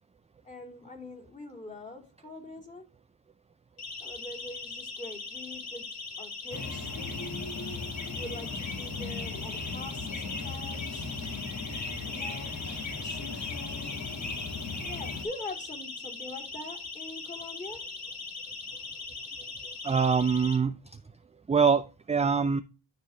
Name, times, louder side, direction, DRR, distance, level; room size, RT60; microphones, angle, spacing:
voice 1, 0.4-2.8 4.0-7.4 8.1-11.1 12.0-12.6 13.0-14.1 14.8-17.9, left 2 dB, 15° left, 3.0 m, -44 dB
Siren, 3.8-20.6, left 4 dB, 55° left, 2.8 m, -40 dB
sound 1, 6.5-15.2, left 3 dB, 35° left, 1.8 m, -37 dB
voice 2, 19.8-20.8 21.5-22.6, right 5 dB, 15° right, 0.3 m, -24 dB
12.5 x 4.3 x 3.2 m
cardioid pair, 90°, 46 cm